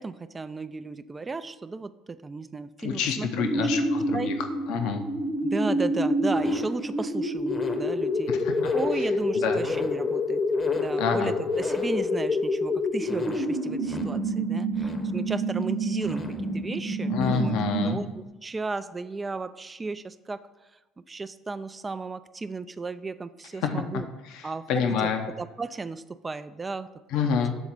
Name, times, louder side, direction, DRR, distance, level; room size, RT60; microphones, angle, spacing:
voice 1, 0.0-3.7 4.1-4.3 5.4-8.4 8.7-10.4 10.8-18.1 18.4-20.5 21.1-24.1 24.4-24.8 25.4-27.2, right 3 dB, 25° right, 12 dB, 0.4 m, -34 dB
voice 2, 2.8-4.3 4.7-5.0 8.3-8.5 9.3-9.6 11.0-11.3 17.1-18.0 23.6-23.7 24.3-24.4 24.7-25.2 27.1-27.6, left 6 dB, 65° left, 5 dB, 0.7 m, -27 dB
sound 1, 3.4-18.2, left 1 dB, 30° left, 0.9 m, -27 dB
7.1 x 3.9 x 6.0 m, 1.1 s
hypercardioid pair, 65°, 0 cm